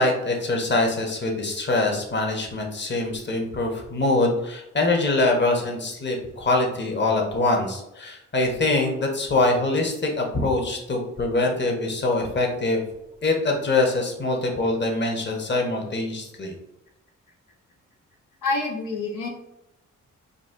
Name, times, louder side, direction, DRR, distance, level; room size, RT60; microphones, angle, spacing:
voice 1, 0.0-12.8 13.2-16.5, left 2 dB, 35° left, 1 dB, 1.1 m, -24 dB
voice 2, 18.4-19.3, left 3 dB, 75° left, -1 dB, 0.8 m, -27 dB
4.0 x 2.4 x 3.7 m, 0.88 s
cardioid pair, 65°, 32 cm